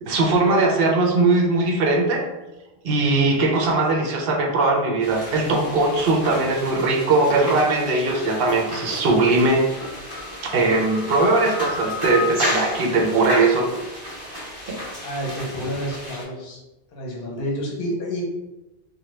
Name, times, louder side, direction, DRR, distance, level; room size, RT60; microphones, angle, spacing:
voice 1, 0.0-2.2 2.8-9.7 10.5-13.7 14.7-14.8, right 3 dB, 70° right, 1 dB, 0.7 m, -20 dB
sound 1, 5.0-16.2, left 1 dB, 25° right, 0.8 m, -32 dB
voice 2, 15.0-16.6 16.9-18.2, equal, 70° left, -2 dB, 1.0 m, -29 dB
2.8 x 2.2 x 3.2 m, 1.0 s
omnidirectional pair, 1.1 m